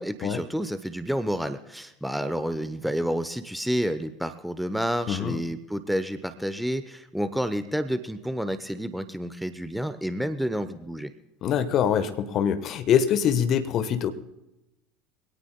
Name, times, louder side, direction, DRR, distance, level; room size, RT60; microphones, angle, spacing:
voice 1, 0.0-11.1, equal, ahead, 11 dB, 0.8 m, -29 dB
voice 2, 5.1-5.4 11.4-14.1, left 8 dB, 40° left, 11 dB, 1.1 m, -24 dB
24.0 x 17.5 x 2.2 m, 0.95 s
figure-of-eight pair, 70°, 0 cm